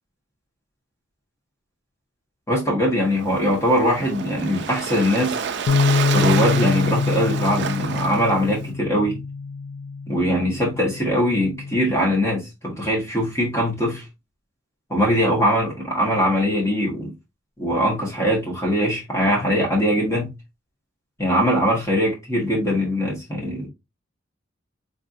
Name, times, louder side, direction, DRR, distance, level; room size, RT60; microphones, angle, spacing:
voice 1, 2.5-5.4 6.1-9.2 10.1-14.0 14.9-17.1 17.6-20.3 21.2-23.7, equal, 15° left, 1.5 m, -21 dB
Waves surf, 3.0-8.7, right 6 dB, 60° right, 0.5 m, -29 dB
sound 1, 5.7-11.9, left 4 dB, 75° left, 0.3 m, -25 dB
3.9 x 3.3 x 2.6 m
head